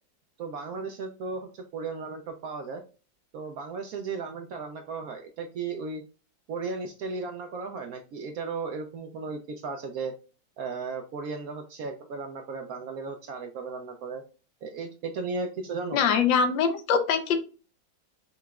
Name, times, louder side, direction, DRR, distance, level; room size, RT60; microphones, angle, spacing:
voice 1, 0.4-2.8 3.3-6.0 6.5-10.1 10.6-14.2 14.6-16.0, right 4 dB, 75° right, 4 dB, 0.8 m, -35 dB
voice 2, 15.9-17.4, left 6 dB, 85° left, 7 dB, 1.4 m, -23 dB
5.5 x 2.9 x 2.3 m, 0.35 s
omnidirectional pair, 2.0 m